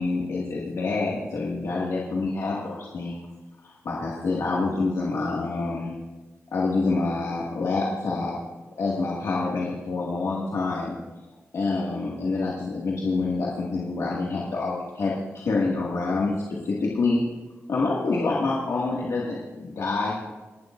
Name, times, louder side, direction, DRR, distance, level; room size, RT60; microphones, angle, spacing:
voice 1, 0.0-3.3 3.6-5.9 6.5-8.3 8.8-11.0 11.5-16.3 16.6-17.2 17.7-20.3, left 3 dB, 80° left, -5 dB, 2.0 m, -27 dB
28.0 x 12.0 x 2.6 m, 1.2 s
wide cardioid pair, 170°, 5 cm